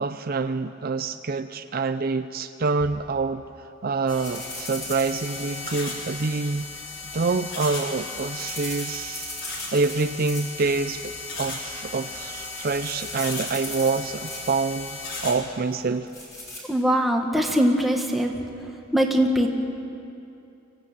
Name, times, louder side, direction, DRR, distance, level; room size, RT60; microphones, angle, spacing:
voice 1, 0.0-3.4 3.8-6.7 7.1-9.3 9.7-11.1 11.4-16.1, right 4 dB, 50° right, 10 dB, 0.6 m, -26 dB
sound 1, 4.1-15.3, left 3 dB, 70° left, 4.2 m, -36 dB
sound 2, 4.2-6.1 7.6-10.7 11.0-11.4 11.9-12.1 12.3-14.7 15.7-16.6, left 1 dB, 15° left, 6.0 m, -39 dB
voice 2, 16.7-18.3 18.9-19.5, equal, ahead, 1 dB, 1.8 m, -21 dB
25.0 x 16.5 x 8.9 m, 2.7 s
head